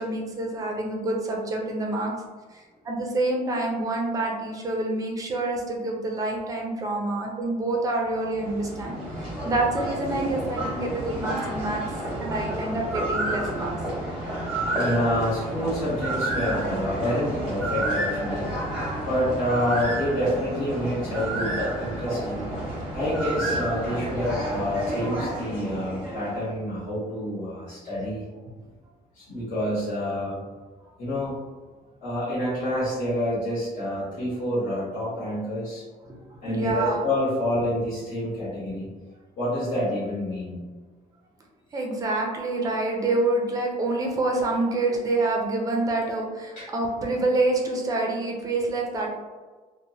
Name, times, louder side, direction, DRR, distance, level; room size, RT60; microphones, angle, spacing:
voice 1, 0.0-2.1 2.5-11.8 12.2-13.7 36.1-36.2 36.4-37.0 41.7-49.1, right 2 dB, 25° right, 0 dB, 0.4 m, -27 dB
sound 1, 8.1-26.5, right 1 dB, 5° right, 0.8 m, -30 dB
voice 2, 14.7-18.5 19.1-22.5 22.9-28.2 29.1-30.4 31.0-31.3 32.0-35.8 36.4-38.9 39.4-40.6 46.6-46.7, equal, 55° left, -9 dB, 1.0 m, -28 dB
2.8 x 2.1 x 2.7 m, 1.4 s
cardioid pair, 175°, 15 cm